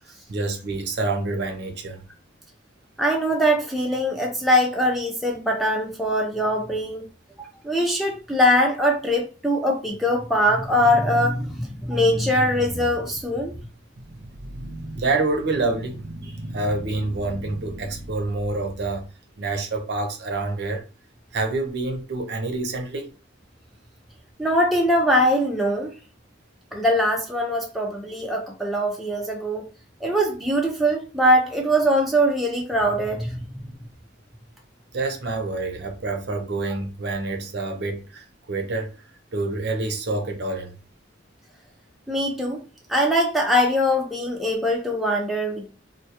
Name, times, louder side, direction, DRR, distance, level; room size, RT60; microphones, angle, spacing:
voice 1, 0.1-2.0 13.5-13.7 14.0-19.0 19.4-20.8 21.3-23.1 34.9-38.9 39.3-40.8, right 3 dB, 60° right, 0.5 m, -27 dB
voice 2, 3.0-7.0 7.4-13.5 24.4-25.9 26.7-29.6 30.0-33.8 42.1-42.6 42.9-45.7, equal, ahead, 0.3 m, -22 dB
2.2 x 2.0 x 2.7 m
head